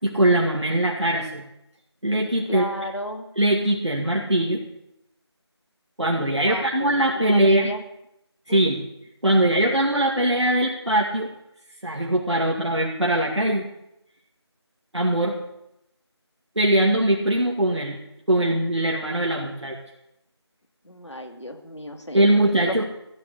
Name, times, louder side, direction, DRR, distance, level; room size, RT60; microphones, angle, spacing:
voice 1, 0.0-1.4 2.0-2.6 3.4-4.6 6.0-7.7 8.5-8.8 9.2-11.3 11.8-13.7 14.9-15.4 16.6-18.0 18.3-19.8 22.1-22.8, right 1 dB, 85° right, -2 dB, 2.4 m, -21 dB
voice 2, 2.5-3.3 6.4-6.9 7.3-7.8 8.5-8.6 20.8-22.8, equal, 85° left, 5 dB, 2.3 m, -34 dB
14.0 x 7.6 x 8.3 m, 0.82 s
figure-of-eight pair, 170°, 14 cm